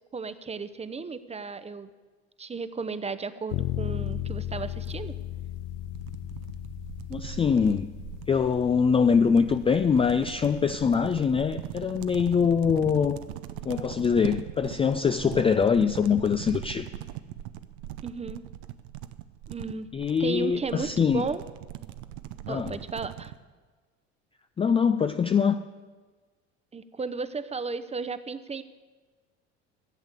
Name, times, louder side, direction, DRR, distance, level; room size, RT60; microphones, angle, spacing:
voice 1, 0.1-1.9 2.4-5.1 18.0-18.4 19.5-19.9 20.2-21.4 22.5-23.3 26.7-28.6, right 4 dB, 20° right, 13 dB, 0.8 m, -34 dB
sound 1, 3.5-13.3, left 13 dB, 60° left, 0.6 m, -37 dB
sound 2, 4.1-23.4, right 13 dB, 65° right, 0.8 m, -41 dB
voice 2, 7.1-7.9 8.3-13.2 13.7-16.9 19.9-21.3 22.5-22.8 24.6-25.6, left 6 dB, 15° left, 9 dB, 0.4 m, -23 dB
14.5 x 8.0 x 8.2 m, 1.4 s
hypercardioid pair, 70°, 35 cm